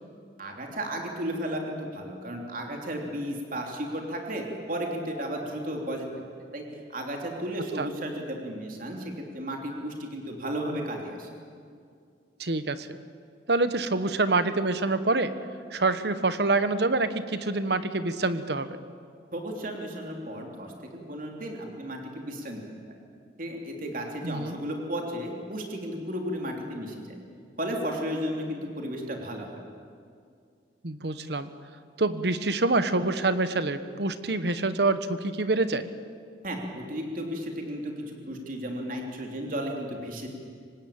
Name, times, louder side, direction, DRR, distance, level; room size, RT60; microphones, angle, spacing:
voice 1, 0.4-6.1 6.5-6.6 6.9-11.3 19.3-22.6 23.4-27.2 27.6-29.5 36.4-40.3, equal, 50° right, 1 dB, 3.3 m, -34 dB
voice 2, 12.4-12.9 13.5-15.3 15.7-18.8 24.2-24.6 30.8-31.5 32.0-35.9, right 3 dB, 65° right, 11 dB, 1.2 m, -26 dB
25.0 x 19.5 x 8.8 m, 2.2 s
head